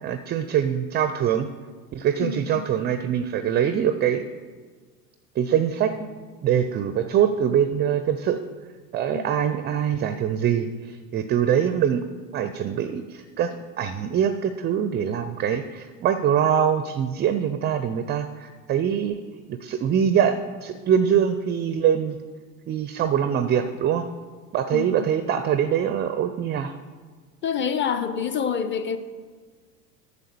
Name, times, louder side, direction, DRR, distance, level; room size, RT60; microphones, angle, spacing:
voice 1, 0.0-1.5 1.9-4.2 5.4-6.1 6.4-8.4 8.9-12.0 12.3-19.2 19.5-22.2 22.7-24.1 24.5-26.7, right 8 dB, 20° right, 11 dB, 0.4 m, -23 dB
voice 2, 2.2-2.7 9.1-9.3 24.7-25.1 27.4-29.0, left 7 dB, 25° left, 10 dB, 0.8 m, -27 dB
9.2 x 6.8 x 6.9 m, 1.5 s
hypercardioid pair, 80°, 49 cm